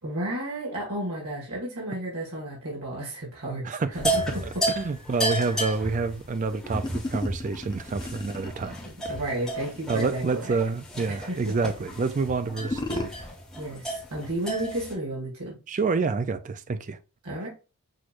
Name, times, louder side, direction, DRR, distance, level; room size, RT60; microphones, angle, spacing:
voice 1, 0.0-4.6 8.8-10.6 11.1-11.6 13.6-15.6 17.2-17.5, right 1 dB, 80° right, 1.9 m, -33 dB
sound 1, 3.9-14.9, right 1 dB, 5° left, 1.5 m, -33 dB
voice 2, 4.8-8.8 9.9-13.1 15.7-17.0, right 4 dB, 35° right, 0.3 m, -28 dB
sound 2, 6.7-10.5 12.4-13.1, left 2 dB, 20° left, 0.5 m, -34 dB
6.3 x 3.0 x 2.5 m
head